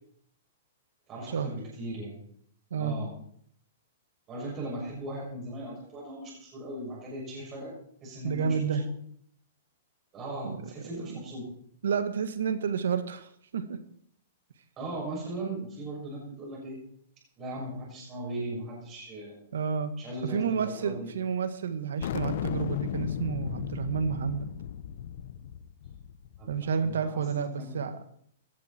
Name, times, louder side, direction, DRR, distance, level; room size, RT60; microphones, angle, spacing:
voice 1, 1.1-2.2 2.8-3.1 4.3-8.6 10.1-11.4 14.8-16.8 17.4-19.4 20.0-21.1 26.4-27.8, right 1 dB, 25° right, -5 dB, 7.3 m, -38 dB
voice 2, 8.2-8.9 10.4-10.6 11.0-11.1 11.8-13.8 19.5-19.9 20.2-24.5 26.5-28.0, right 6 dB, 85° right, 11 dB, 1.7 m, -30 dB
sound 1, 22.0-26.7, left 10 dB, 60° left, 1.0 m, -35 dB
17.0 x 13.0 x 4.5 m, 0.64 s
hypercardioid pair, 145°, 0 cm